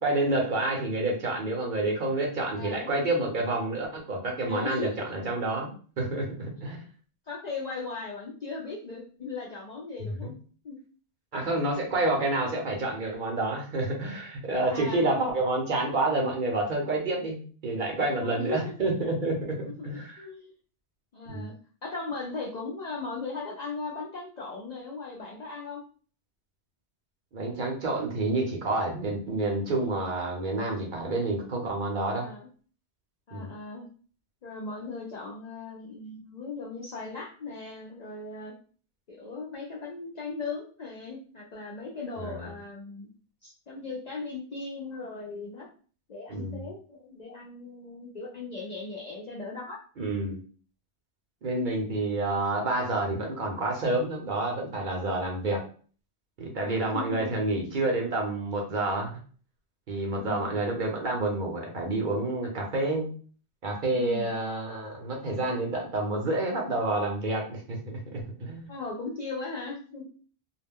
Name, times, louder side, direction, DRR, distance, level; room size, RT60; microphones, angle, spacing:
voice 1, 0.0-5.7 6.0-6.8 10.2-10.3 11.3-20.2 21.3-21.5 27.3-32.3 33.3-33.5 42.2-42.5 46.3-46.6 50.0-50.4 51.4-55.6 56.4-59.1 59.9-63.1 63.6-67.8 68.1-68.7, right 2 dB, 55° right, 0 dB, 0.7 m, -29 dB
voice 2, 2.5-2.9 4.5-5.1 7.3-10.3 10.6-10.8 14.6-15.1 18.2-18.7 19.6-19.9 20.2-20.5 21.1-21.5 21.8-25.8 32.1-32.5 33.3-33.9 34.4-38.5 39.1-43.1 43.4-45.7 46.1-49.8 56.6-57.3 60.1-60.5 63.9-64.3 68.7-70.1, left 3 dB, 55° left, -3 dB, 0.5 m, -38 dB
2.2 x 2.1 x 3.5 m, 0.42 s
omnidirectional pair, 1.1 m